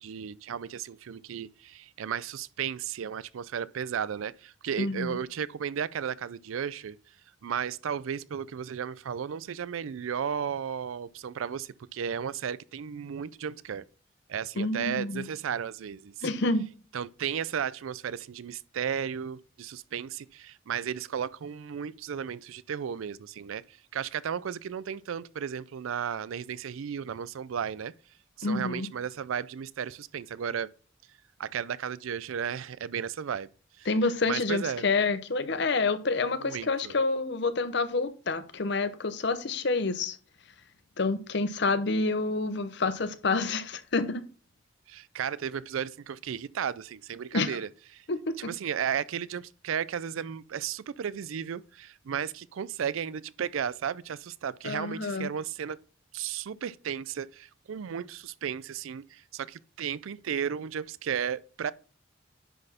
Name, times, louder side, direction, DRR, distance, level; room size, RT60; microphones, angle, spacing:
voice 1, 0.0-7.0 7.4-13.9 14.3-16.3 16.9-27.9 28.4-30.7 31.4-33.5 33.8-33.9 34.3-34.8 36.3-37.0 44.9-48.0 48.4-55.8 56.1-61.7, right 8 dB, 80° right, 0.4 m, -34 dB
voice 2, 4.8-5.2 14.6-15.2 16.2-16.7 28.4-28.9 33.9-40.2 41.0-44.2 47.3-47.6 48.1-48.3 54.6-55.3, left 3 dB, 55° left, 0.7 m, -28 dB
10.0 x 4.1 x 4.2 m
head